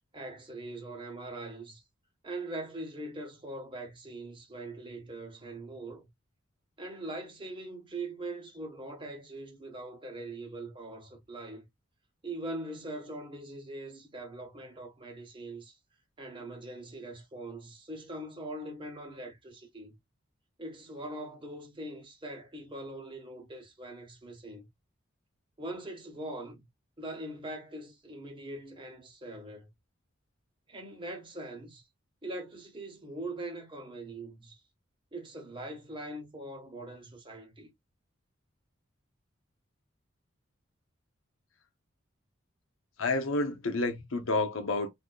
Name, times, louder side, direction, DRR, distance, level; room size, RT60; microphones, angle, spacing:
voice 1, 0.1-1.8 2.2-6.1 6.8-11.7 12.2-15.8 16.2-20.0 20.6-24.7 25.6-26.6 27.0-29.7 30.7-31.9 32.2-34.6 35.1-37.7, right 2 dB, 25° right, 1.2 m, -42 dB
voice 2, 43.0-44.9, left 2 dB, 75° left, 0.8 m, -29 dB
3.7 x 2.7 x 2.3 m
head